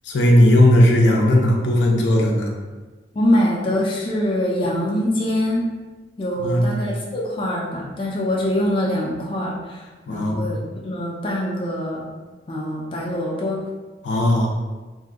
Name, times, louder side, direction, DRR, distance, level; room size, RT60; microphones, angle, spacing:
voice 1, 0.1-2.5 6.4-6.8 10.1-10.5 14.0-14.5, left 1 dB, 90° left, 0 dB, 0.5 m, -16 dB
voice 2, 3.1-5.7 6.2-9.8 10.1-12.0 12.5-13.6, left 1 dB, 30° left, -3 dB, 0.4 m, -24 dB
2.6 x 2.2 x 3.6 m, 1.3 s
head